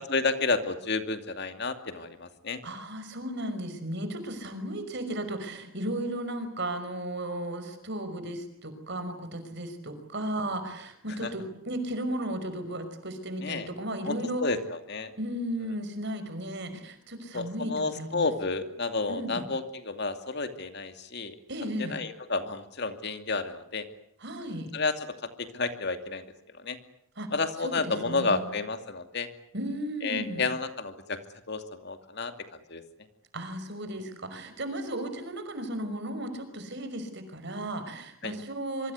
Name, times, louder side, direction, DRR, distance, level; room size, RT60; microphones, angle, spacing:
voice 1, 0.0-2.6 11.2-11.3 13.4-13.7 14.0-15.1 17.3-21.3 21.8-23.9 24.7-26.3 26.5-26.8 27.3-29.3 30.0-31.2 31.5-32.3 32.7-32.8 38.2-38.3, left 3 dB, 50° left, 8 dB, 2.5 m, -31 dB
voice 2, 2.6-14.4 15.2-18.3 19.1-19.5 21.5-22.0 24.2-24.7 27.2-27.3 27.6-28.4 29.5-30.4 33.3-38.9, right 1 dB, 55° right, 8 dB, 5.5 m, -35 dB
26.5 x 24.5 x 8.3 m, 0.69 s
head